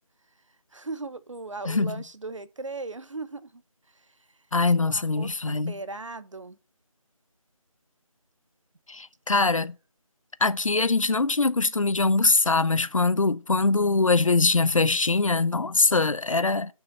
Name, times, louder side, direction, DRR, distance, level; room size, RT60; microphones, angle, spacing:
voice 1, 0.7-3.6 3.9-4.2 4.7-6.6, right 3 dB, 60° right, 0.8 m, -38 dB
voice 2, 4.5-5.7 8.9-9.7 10.4-16.7, left 3 dB, 65° left, 0.7 m, -23 dB
7.0 x 5.7 x 6.8 m
figure-of-eight pair, 170°, 18 cm